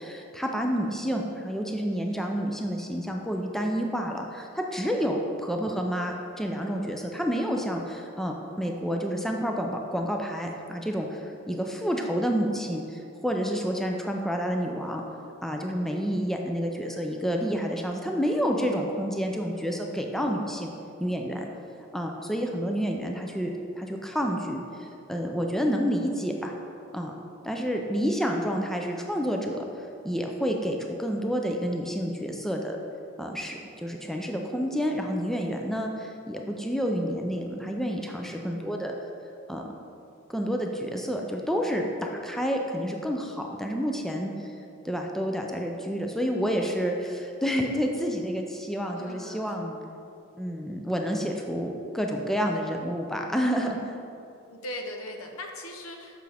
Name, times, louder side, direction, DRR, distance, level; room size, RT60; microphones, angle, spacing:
voice 1, 0.0-15.0 15.4-20.7 21.0-21.5 21.9-26.5 26.9-27.1 27.4-32.8 33.2-38.9 39.5-39.7 40.3-44.5 44.8-49.8 50.4-53.8, equal, ahead, 1 dB, 0.4 m, -29 dB
voice 2, 1.3-1.8 29.0-29.1 49.0-49.5 54.5-56.2, left 1 dB, 85° left, 3 dB, 0.8 m, -40 dB
6.9 x 6.1 x 3.4 m, 2.6 s
head